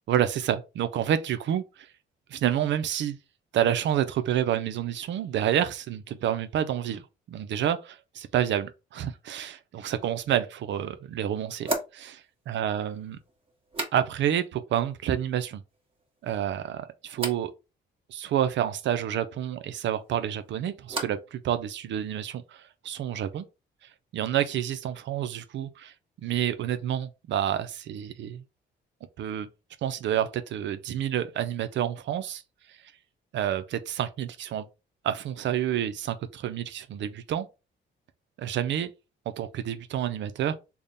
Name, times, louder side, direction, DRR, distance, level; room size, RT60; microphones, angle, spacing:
voice 1, 0.1-1.9 2.3-3.2 3.5-7.0 7.3-13.2 13.9-15.6 16.2-17.5 18.1-23.5 24.1-25.9 26.2-28.4 29.2-29.5 29.8-32.4 32.7-32.8 33.3-34.7 35.0-37.5 38.4-38.9 39.4-40.5, right 10 dB, 70° right, 0.5 m, -29 dB
sound 1, 10.4-10.5 11.6-14.5 14.7-15.3 15.7-16.3 17.1-17.5 19.9-21.4 21.6-22.2, right 2 dB, 25° right, 1.3 m, -38 dB
3.4 x 2.2 x 3.9 m
cardioid pair, 90°, 20 cm